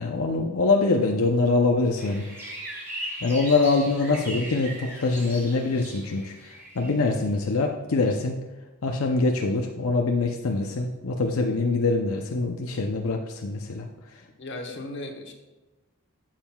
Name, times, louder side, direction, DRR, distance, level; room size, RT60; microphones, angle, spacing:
voice 1, 0.0-2.2 3.2-8.4 8.8-13.9, left 3 dB, 85° left, 2 dB, 0.6 m, -24 dB
sound 1, 2.0-7.2, right 1 dB, 10° right, 2.1 m, -39 dB
voice 2, 14.2-15.3, left 2 dB, 60° left, 4 dB, 1.1 m, -37 dB
11.5 x 7.4 x 2.3 m, 1.1 s
head